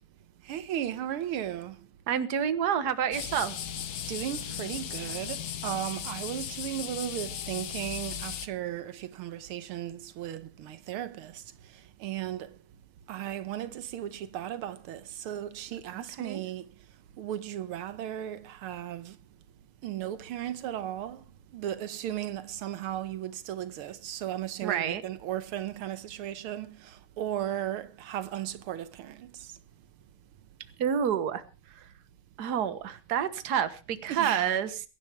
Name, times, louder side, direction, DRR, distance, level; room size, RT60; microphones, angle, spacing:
voice 1, 0.5-1.8 4.1-11.4 12.0-12.5 13.1-16.7 17.2-19.2 19.8-21.2 21.5-29.5 34.1-34.5, right 11 dB, 90° right, 1.8 m, -36 dB
voice 2, 2.1-3.6 15.9-16.4 24.6-25.0 30.8-31.9 32.4-34.8, right 8 dB, 55° right, 1.7 m, -29 dB
sound 1, 3.1-8.5, left 9 dB, 55° left, 1.3 m, -37 dB
22.5 x 11.5 x 3.4 m
omnidirectional pair, 2.3 m